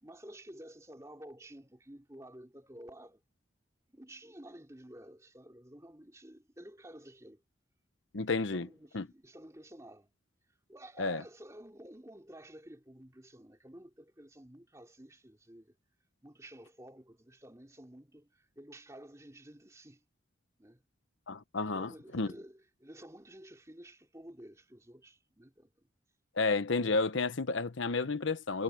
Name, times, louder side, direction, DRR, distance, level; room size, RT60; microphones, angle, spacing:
voice 1, 0.0-3.2 3.9-7.4 8.3-10.1 10.7-15.8 16.2-20.0 20.6-20.8 21.6-25.7, right 1 dB, 15° right, 2.8 m, -52 dB
voice 2, 8.1-8.7 8.9-9.1 11.0-11.2 21.3-22.3 26.4-28.6, left 3 dB, 70° left, 1.0 m, -31 dB
head